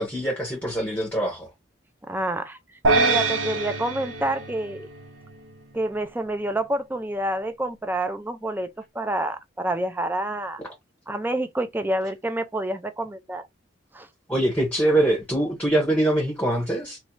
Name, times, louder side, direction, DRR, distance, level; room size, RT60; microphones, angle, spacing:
voice 1, 0.0-1.5 14.3-17.0, right 1 dB, 10° left, 0.9 m, -23 dB
voice 2, 2.1-4.9 5.7-8.7 8.9-10.6 11.1-13.5 13.9-14.1, right 1 dB, 10° right, 0.4 m, -28 dB
sound 1, 2.8-5.3, right 3 dB, 75° right, 0.7 m, -24 dB
3.1 x 2.6 x 4.4 m
head